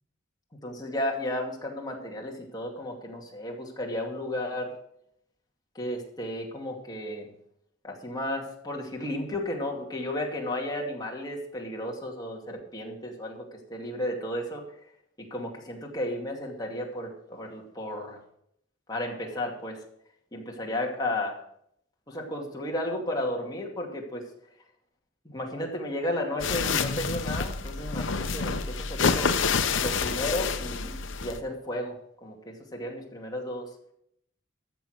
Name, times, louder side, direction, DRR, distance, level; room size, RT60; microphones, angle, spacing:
voice 1, 0.6-4.7 5.7-7.3 7.8-14.6 15.2-18.2 18.9-19.8 20.3-21.4 22.1-24.2 25.2-29.3 29.8-33.7, left 1 dB, 20° left, -1 dB, 2.4 m, -33 dB
sound 1, 26.4-31.4, left 5 dB, 70° left, 0.9 m, -28 dB
14.0 x 7.0 x 6.5 m, 0.71 s
head